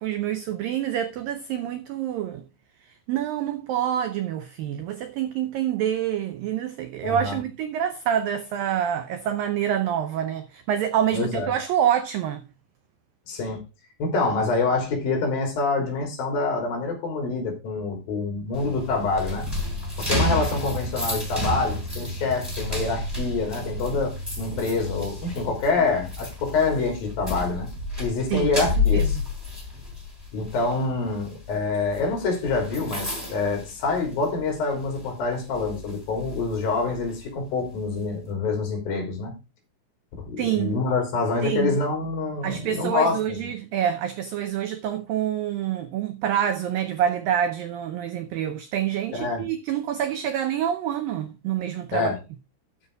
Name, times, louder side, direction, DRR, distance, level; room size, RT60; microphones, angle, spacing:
voice 1, 0.0-2.4 3.1-12.4 28.3-29.2 40.4-40.8 41.4-41.8 42.4-52.1, right 10 dB, 85° right, 2.0 m, -27 dB
voice 2, 7.0-7.4 11.1-11.5 13.3-13.6 14.0-19.5 20.0-27.7 28.0-29.2 30.3-39.3 40.2-43.5 49.1-49.4 51.9-52.1, left 3 dB, 55° left, 4.9 m, -26 dB
sound 1, 18.5-34.5 34.8-35.1 35.5-37.2, left 2 dB, 5° right, 3.9 m, -30 dB
13.0 x 5.6 x 4.8 m
omnidirectional pair, 5.1 m